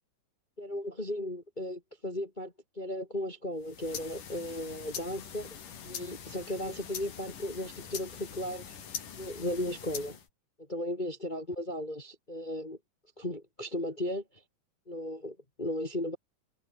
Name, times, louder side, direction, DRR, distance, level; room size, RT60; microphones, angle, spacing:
voice 1, 0.6-5.5 5.8-8.8 9.2-10.2 10.7-12.8 13.2-14.2 14.9-16.2, left 1 dB, 20° left, 1.4 m, -36 dB
sound 1, 3.6-10.3, left 7 dB, 75° left, 4.6 m, -43 dB
omnidirectional pair, 3.7 m